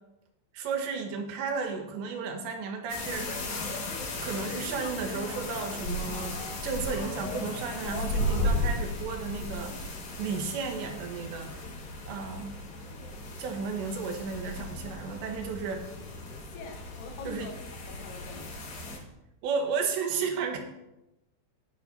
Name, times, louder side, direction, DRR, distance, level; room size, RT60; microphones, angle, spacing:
voice 1, 0.5-3.3 4.2-6.4 6.6-9.7 10.2-11.6 12.1-12.5 13.4-15.9 17.3-17.5 19.4-20.6, right 5 dB, 85° right, 3 dB, 3.5 m, -33 dB
sound 1, 2.9-19.0, left 1 dB, 55° left, 2.7 m, -35 dB
voice 2, 16.2-18.6, left 5 dB, 75° left, 4 dB, 2.9 m, -45 dB
18.0 x 8.5 x 2.8 m, 0.92 s
omnidirectional pair, 5.0 m